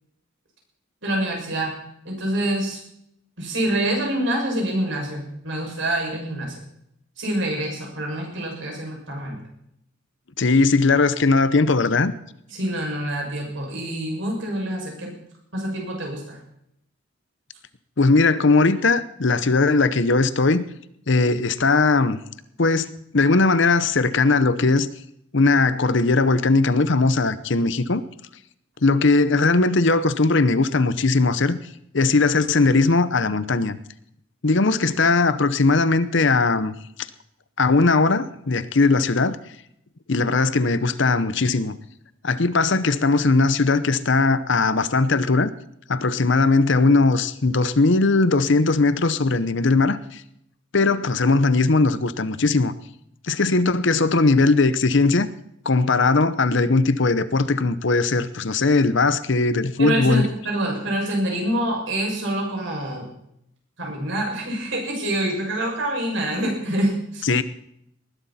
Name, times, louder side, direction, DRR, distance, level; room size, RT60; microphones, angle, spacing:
voice 1, 1.0-1.8 2.0-2.8 3.4-6.5 7.2-9.4 12.5-15.1 15.5-16.4 59.8-63.1 63.8-67.3, right 1 dB, 60° right, 6.6 m, -26 dB
voice 2, 10.4-12.1 18.0-20.6 21.1-22.2 22.6-24.9 25.3-28.0 28.8-31.6 31.9-33.8 34.4-36.7 37.6-39.4 40.1-41.8 42.2-45.5 45.9-50.2 50.7-52.7 53.3-55.3 55.6-60.2 67.3-67.4, left 3 dB, 60° left, 0.8 m, -19 dB
19.5 x 12.0 x 4.3 m
head